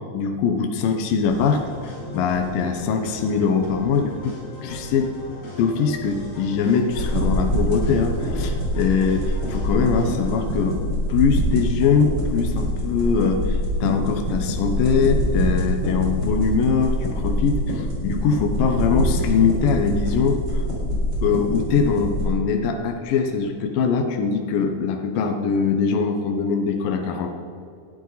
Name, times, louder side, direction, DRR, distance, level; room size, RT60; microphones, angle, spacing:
voice 1, 0.1-4.4 4.6-5.1 5.6-10.8 11.1-20.6 21.2-27.3, left 5 dB, 75° left, 4 dB, 2.7 m, -22 dB
sound 1, 1.2-10.8, left 1 dB, 55° left, 5.6 m, -38 dB
sound 2, 6.9-22.2, equal, 30° right, 4.2 m, -25 dB
19.5 x 12.5 x 4.1 m, 2.4 s
omnidirectional pair, 4.2 m